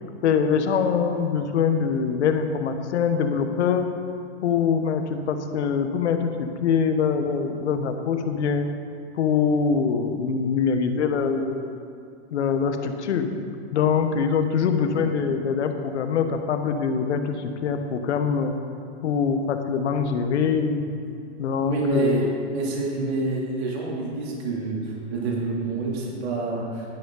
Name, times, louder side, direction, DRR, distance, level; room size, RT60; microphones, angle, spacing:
voice 1, 0.2-3.9 4.4-8.7 9.1-11.7 12.3-13.3 13.7-18.6 19.0-20.9 21.4-22.3, left 6 dB, 80° left, 7 dB, 1.1 m, -23 dB
voice 2, 21.6-26.8, right 2 dB, 65° right, -3 dB, 2.8 m, -27 dB
11.5 x 11.0 x 3.9 m, 2.4 s
hypercardioid pair, 130°, 34 cm